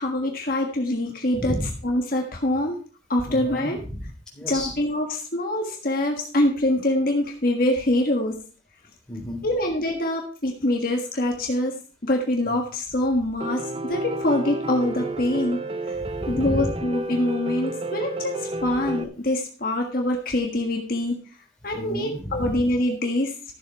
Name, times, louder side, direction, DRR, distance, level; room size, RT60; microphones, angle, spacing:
voice 1, 0.0-1.5 1.8-2.8 3.1-3.8 4.5-8.4 9.4-11.7 12.0-15.6 15.9-16.0 16.3-21.2 21.6-23.3, left 1 dB, 50° left, 1 dB, 1.6 m, -24 dB
voice 2, 1.3-1.7 3.3-4.7 9.1-9.4 12.5-12.6 15.9-16.7 21.7-22.7, equal, 5° left, -3 dB, 3.8 m, -32 dB
Piano, 13.4-19.0, right 2 dB, 30° right, 0.7 m, -31 dB
13.5 x 7.4 x 4.6 m, 0.39 s
head